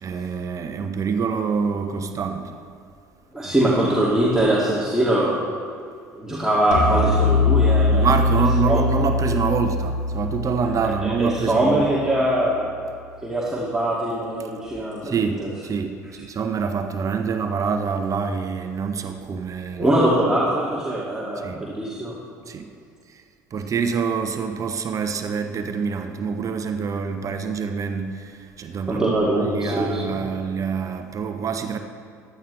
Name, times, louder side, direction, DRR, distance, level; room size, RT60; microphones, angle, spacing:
voice 1, 0.0-2.5 3.4-3.5 7.9-11.9 15.0-15.3 15.6-19.9 21.4-21.6 22.5-22.7 23.5-31.8, right 5 dB, 35° right, 7 dB, 1.0 m, -26 dB
voice 2, 3.3-5.4 6.1-8.1 8.6-8.8 10.6-10.7 11.0-12.7 13.2-15.5 19.8-22.2 28.9-30.2, right 1 dB, 5° right, -7 dB, 2.2 m, -22 dB
sound 1, 6.7-12.1, left 3 dB, 80° left, 1.3 m, -22 dB
15.5 x 11.0 x 3.2 m, 2.3 s
figure-of-eight pair, 60°, 9 cm